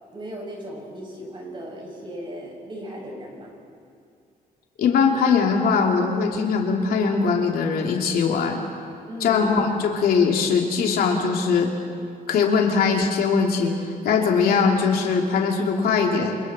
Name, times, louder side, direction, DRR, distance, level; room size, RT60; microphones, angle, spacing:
voice 1, 0.1-3.5 9.1-9.4, equal, 35° right, -2 dB, 6.9 m, -36 dB
voice 2, 4.8-8.6 9.2-11.7 12.3-13.7 14.0-16.4, left 5 dB, 80° left, 1 dB, 2.8 m, -21 dB
28.5 x 27.0 x 4.4 m, 2.3 s
cardioid pair, 130°, 15 cm